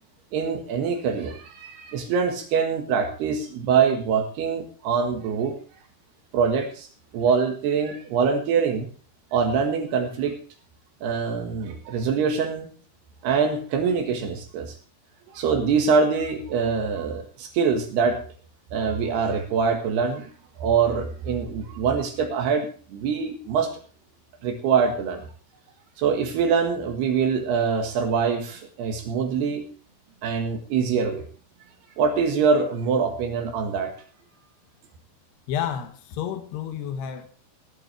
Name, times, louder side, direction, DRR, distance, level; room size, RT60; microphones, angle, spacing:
voice 1, 0.3-5.6 6.3-6.9 7.1-8.9 9.3-10.3 11.0-12.7 13.2-14.8 15.3-18.2 18.7-20.3 20.6-23.7 24.4-25.3 26.0-29.6 30.2-31.2 32.0-33.9, right 6 dB, 75° right, 4 dB, 3.5 m, -24 dB
voice 2, 35.5-37.3, left 9 dB, 80° left, 6 dB, 3.4 m, -30 dB
18.0 x 11.5 x 3.3 m, 0.40 s
omnidirectional pair, 4.8 m